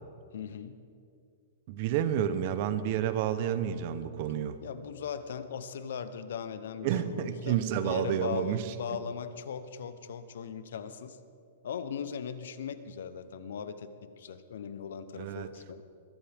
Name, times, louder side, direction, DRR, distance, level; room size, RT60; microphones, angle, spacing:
voice 1, 0.3-0.8 4.6-11.2 11.6-15.8, left 7 dB, 75° left, 12 dB, 0.9 m, -39 dB
voice 2, 1.7-4.6 6.8-9.0 15.2-15.5, right 10 dB, 45° right, 12 dB, 0.9 m, -30 dB
21.5 x 14.5 x 3.6 m, 2.4 s
hypercardioid pair, 150°, 0 cm